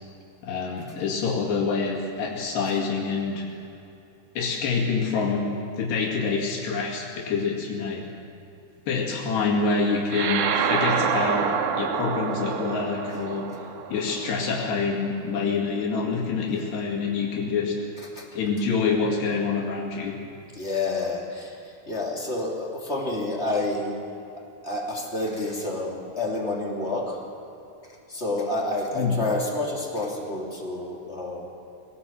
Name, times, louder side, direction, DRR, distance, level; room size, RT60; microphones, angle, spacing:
voice 1, 0.4-3.5 4.4-5.4 5.8-8.0 8.9-13.5 13.9-17.8 18.4-20.2 28.9-29.2, left 4 dB, 75° left, -2 dB, 4.3 m, -26 dB
sound 1, 10.1-14.8, right 7 dB, 80° right, 3.4 m, -27 dB
voice 2, 20.5-21.6 21.9-24.0 24.6-27.2 28.1-31.5, left 2 dB, 20° left, -2 dB, 2.4 m, -29 dB
23.0 x 18.0 x 7.6 m, 2.7 s
omnidirectional pair, 4.9 m